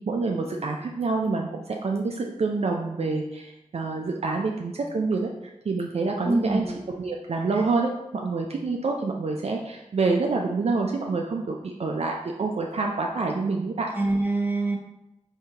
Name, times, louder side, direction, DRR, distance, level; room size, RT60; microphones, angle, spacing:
voice 1, 0.1-5.3 5.7-6.7 7.0-13.9, right 3 dB, 55° right, 1 dB, 0.4 m, -27 dB
voice 2, 6.3-6.8 13.9-14.8, right 2 dB, 15° right, -1 dB, 0.8 m, -25 dB
3.5 x 2.7 x 2.8 m, 0.90 s
cardioid pair, 50°, 13 cm